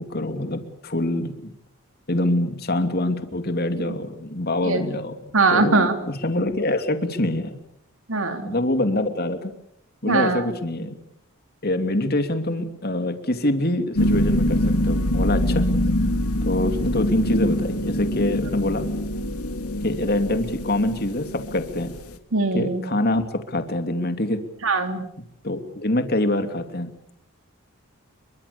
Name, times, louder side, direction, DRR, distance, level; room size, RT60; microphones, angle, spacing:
voice 1, 0.0-1.5 2.1-7.6 8.4-9.5 10.0-10.9 11.6-15.7 16.4-18.8 19.8-21.9 22.5-24.4 25.4-26.9, left 1 dB, 45° left, 8 dB, 2.8 m, -25 dB
voice 2, 5.3-5.9 8.1-8.5 10.1-10.4 22.3-22.8 24.6-25.0, right 3 dB, 65° right, 7 dB, 3.2 m, -21 dB
sound 1, 13.9-22.2, equal, 90° left, 2.6 m, -24 dB
30.0 x 24.0 x 7.0 m, 0.74 s
head